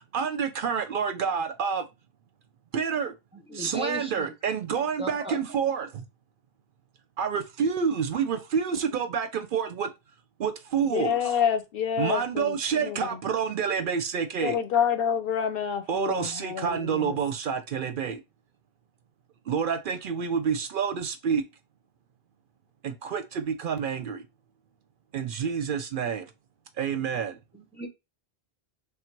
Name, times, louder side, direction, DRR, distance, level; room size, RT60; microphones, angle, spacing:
voice 1, 0.1-1.9 2.7-3.1 3.5-6.0 7.2-9.9 10.4-11.1 12.0-14.6 15.9-18.2 19.5-21.4 22.8-24.2 25.1-26.3 26.8-27.4, right 6 dB, 65° right, 0.7 m, -28 dB
voice 2, 3.3-4.3 4.7-5.5 27.5-27.9, equal, 5° right, 0.6 m, -37 dB
voice 3, 10.9-13.2 14.4-17.2, left 8 dB, 70° left, 0.8 m, -28 dB
3.4 x 2.4 x 4.4 m
omnidirectional pair, 1.0 m